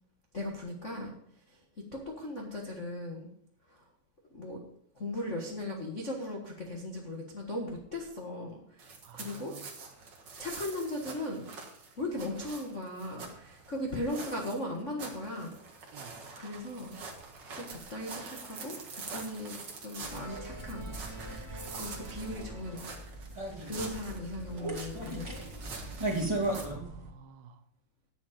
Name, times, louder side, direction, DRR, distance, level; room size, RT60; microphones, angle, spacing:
voice 1, 0.3-1.1 1.5-1.6 1.9-3.3 3.7-3.8 4.3-4.6 4.9-9.5 10.4-11.5 12.0-15.5 15.9-16.0 16.4-17.0 17.5-20.9 21.7-22.8 23.6-25.6, left 1 dB, 80° left, -2 dB, 0.6 m, -38 dB
sound 1, 8.8-26.6, right 4 dB, 45° right, 1.6 m, -46 dB
voice 2, 9.0-9.7 15.9-16.3 26.4-27.6, right 8 dB, 85° right, 9 dB, 2.8 m, -51 dB
sound 2, 20.0-27.1, right 1 dB, 10° right, 1.9 m, -37 dB
10.0 x 9.7 x 5.1 m, 0.68 s
omnidirectional pair, 4.2 m